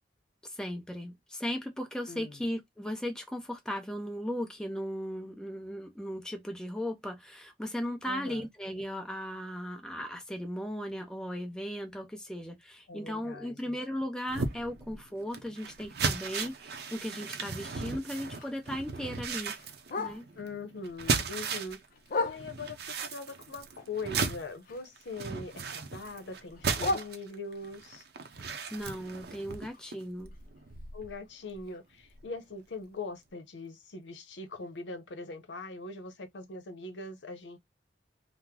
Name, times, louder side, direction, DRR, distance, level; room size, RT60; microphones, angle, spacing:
voice 1, 0.4-19.6 20.0-20.3 28.7-30.3, equal, 5° left, 0.6 m, -37 dB
voice 2, 2.1-2.4 8.0-8.5 12.9-13.8 20.3-21.8 22.2-28.0 30.9-37.6, left 3 dB, 85° left, 0.7 m, -42 dB
sound 1, 14.3-21.9 22.2-31.2 31.5-31.7 32.1-32.2, right 5 dB, 65° right, 0.6 m, -36 dB
Bark, 17.4-20.6 21.0-22.9 23.3-25.2 25.4-27.7 28.2-32.1 32.4-32.5 32.8-33.2 33.7-33.8 34.1-34.2 34.7-34.8, left 3 dB, 50° left, 0.5 m, -40 dB
2.9 x 2.0 x 3.6 m
head